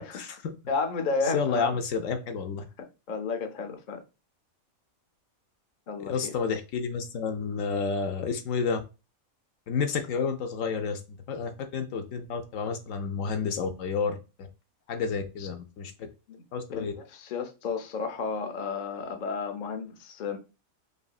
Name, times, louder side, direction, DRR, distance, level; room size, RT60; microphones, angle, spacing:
voice 1, 0.0-0.5 1.3-2.6 6.0-8.8 9.7-11.0 11.3-14.5 14.9-15.9 16.5-16.9, left 5 dB, 70° left, 1.0 m, -30 dB
voice 2, 0.7-1.8 3.1-4.0 5.9-6.3 15.4-15.5 16.3-16.4 16.8-20.4, left 4 dB, 50° left, 0.6 m, -32 dB
5.0 x 2.7 x 2.3 m
omnidirectional pair, 1.4 m